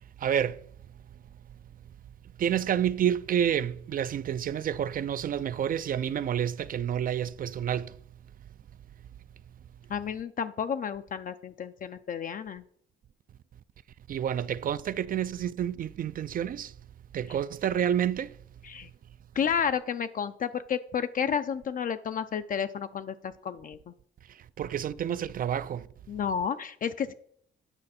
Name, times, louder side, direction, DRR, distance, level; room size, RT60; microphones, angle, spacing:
voice 1, 0.2-0.6 2.4-8.0 14.1-16.7 17.1-18.4 24.3-25.9, right 9 dB, 45° right, 0.4 m, -29 dB
voice 2, 9.9-12.6 18.6-18.9 19.3-23.9 26.1-27.1, left 7 dB, 45° left, 0.4 m, -31 dB
8.9 x 5.2 x 4.2 m
cardioid pair, 90°, 20 cm